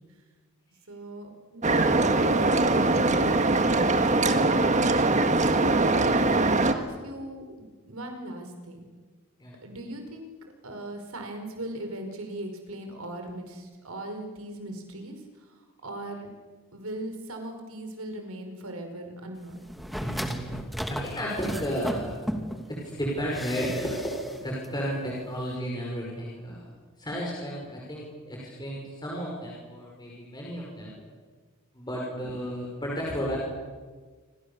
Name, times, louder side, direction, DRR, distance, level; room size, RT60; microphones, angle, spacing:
voice 1, 0.9-2.4 2.7-3.9 5.5-8.9 9.6-10.3 10.6-15.5 15.8-16.3 16.7-19.6 32.1-32.3, right 1 dB, 80° right, 5 dB, 5.1 m, -39 dB
sound 1, 1.6-6.7, right 2 dB, 35° right, 1.6 m, -22 dB
sound 2, 19.7-22.7 23.3-24.4 24.6-24.7, equal, ahead, 2.5 m, -35 dB
voice 2, 20.0-20.6 20.9-22.2 22.7-26.7 27.0-30.9 31.7-33.4, equal, 20° left, -3 dB, 5.8 m, -33 dB
27.5 x 26.5 x 7.1 m, 1.4 s
head